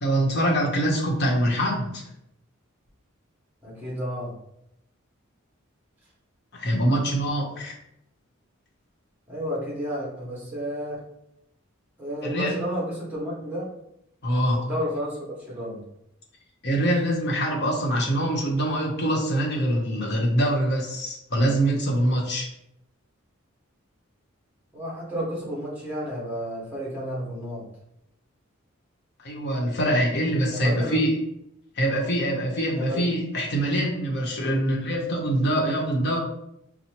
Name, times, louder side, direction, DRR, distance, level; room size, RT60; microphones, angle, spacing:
voice 1, 0.0-2.0 6.5-7.7 12.2-12.5 14.2-14.6 16.6-22.5 29.2-31.1 31.8-36.2, right 1 dB, 55° left, -1 dB, 1.0 m, -24 dB
voice 2, 3.6-4.3 9.3-11.0 12.0-13.7 14.5-15.8 24.7-27.6 30.5-31.0 32.7-33.0, equal, 10° right, -6 dB, 1.5 m, -31 dB
5.7 x 2.1 x 3.0 m, 0.77 s
head